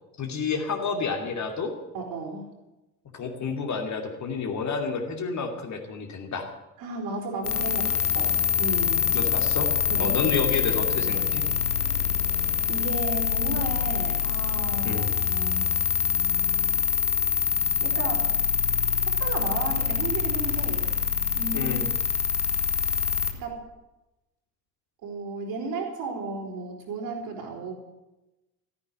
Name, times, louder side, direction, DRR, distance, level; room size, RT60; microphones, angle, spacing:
voice 1, 0.2-1.7 3.1-6.5 9.1-9.7 10.0-11.4 14.8-15.1 21.5-21.9, left 5 dB, 40° left, 3 dB, 2.6 m, -30 dB
voice 2, 1.9-2.5 6.8-9.0 9.9-10.4 12.7-15.8 17.8-18.3 19.2-20.9 21.4-21.8 23.3-23.6 25.0-27.7, right 3 dB, 50° right, 1 dB, 4.6 m, -34 dB
sound 1, 7.4-23.3, left 6 dB, 85° left, 1.4 m, -25 dB
14.5 x 9.6 x 9.5 m, 0.99 s
figure-of-eight pair, 55°, 45 cm